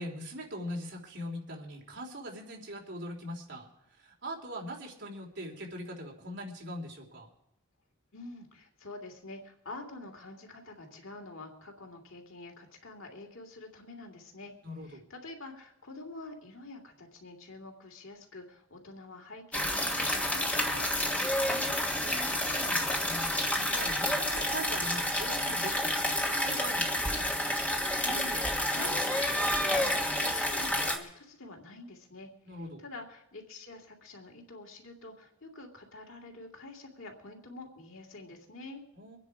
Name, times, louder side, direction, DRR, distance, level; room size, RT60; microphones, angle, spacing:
voice 1, 0.0-7.3 14.6-15.0 22.0-27.2 32.4-32.8 38.9-39.2, equal, 60° right, 0 dB, 3.4 m, -42 dB
voice 2, 8.1-14.5 14.8-21.7 28.0-38.8, left 2 dB, 85° left, 2 dB, 3.0 m, -47 dB
sound 1, 19.5-31.0, left 1 dB, 5° left, 1.4 m, -29 dB
24.0 x 9.7 x 5.0 m, 0.80 s
head